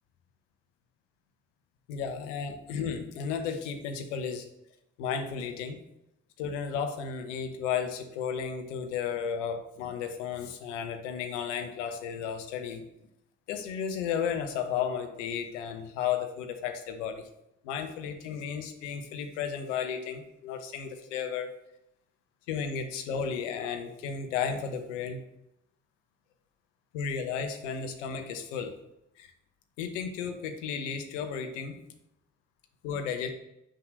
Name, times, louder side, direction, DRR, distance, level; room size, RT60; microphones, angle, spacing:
voice 1, 1.9-4.5 5.0-5.8 6.4-12.8 13.5-17.2 17.6-21.5 22.5-25.2 26.9-28.7 29.2-29.3 29.8-31.8 32.8-33.3, left 7 dB, 80° left, 6 dB, 1.0 m, -33 dB
6.4 x 4.8 x 6.5 m, 0.83 s
hypercardioid pair, 45°, 36 cm